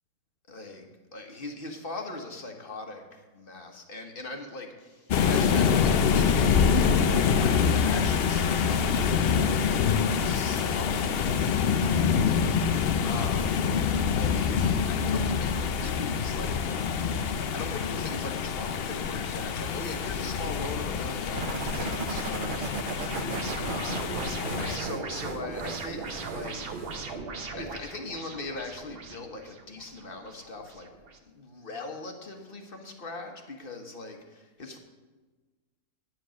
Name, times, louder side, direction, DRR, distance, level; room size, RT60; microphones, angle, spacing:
voice 1, 0.5-12.8 13.0-13.7 14.1-17.3 17.5-23.3 23.7-27.2 27.6-30.9 31.3-34.8, left 3 dB, 40° left, 3 dB, 1.3 m, -40 dB
sound 1, 5.1-24.8, left 6 dB, 60° left, 0.6 m, -26 dB
sound 2, 19.7-31.2, right 3 dB, 45° right, 1.0 m, -40 dB
sound 3, 21.4-27.2, right 6 dB, 65° right, 0.5 m, -38 dB
9.9 x 7.6 x 6.3 m, 1.3 s
omnidirectional pair, 1.5 m